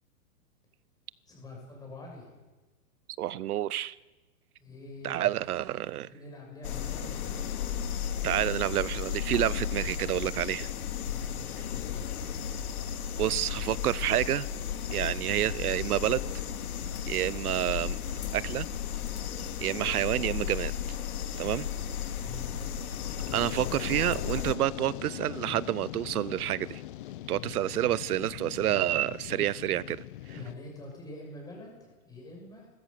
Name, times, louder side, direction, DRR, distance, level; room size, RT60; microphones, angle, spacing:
voice 1, 1.3-2.4 4.6-5.6 6.1-7.3 11.0-12.2 22.1-22.6 27.3-27.5 30.3-32.7, left 2 dB, 10° left, -1 dB, 6.3 m, -46 dB
voice 2, 3.2-4.0 5.0-6.1 8.2-10.7 13.2-14.5 14.9-16.2 17.1-18.0 18.3-18.7 19.6-20.7 21.4-21.7 23.3-26.8 27.3-30.0, right 13 dB, 75° right, 22 dB, 0.7 m, -29 dB
sound 1, 6.6-24.5, left 8 dB, 70° left, 2.3 m, -34 dB
Fire, 22.9-30.5, left 14 dB, 35° left, 0.7 m, -41 dB
29.5 x 13.5 x 6.6 m, 1.2 s
hypercardioid pair, 150°, 45 cm